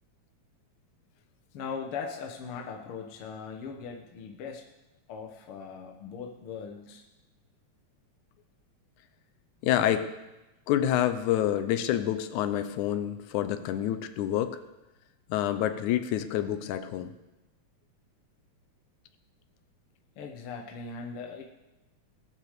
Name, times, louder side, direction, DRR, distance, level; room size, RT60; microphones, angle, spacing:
voice 1, 1.5-4.6 5.1-7.0 20.2-21.4, left 5 dB, 60° left, 1 dB, 1.7 m, -39 dB
voice 2, 9.6-10.1 10.7-14.6 15.3-17.1, left 11 dB, 90° left, 9 dB, 2.2 m, -27 dB
19.5 x 6.8 x 6.6 m, 1.0 s
omnidirectional pair, 3.4 m